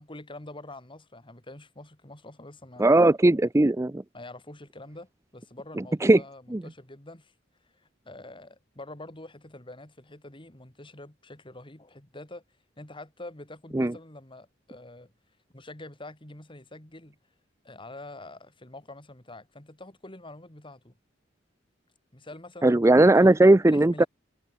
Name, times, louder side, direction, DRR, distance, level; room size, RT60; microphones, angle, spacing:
voice 1, 0.0-3.0 4.1-7.3 7.7-12.4 12.8-15.1 15.5-17.2 17.6-20.9 22.1-23.4 23.7-24.1, left 2 dB, 25° left, 3.3 m, -45 dB
voice 2, 2.8-4.0 6.0-6.2 6.5-6.6 13.7-13.9 22.6-24.0, right 2 dB, 15° right, 0.5 m, -18 dB
head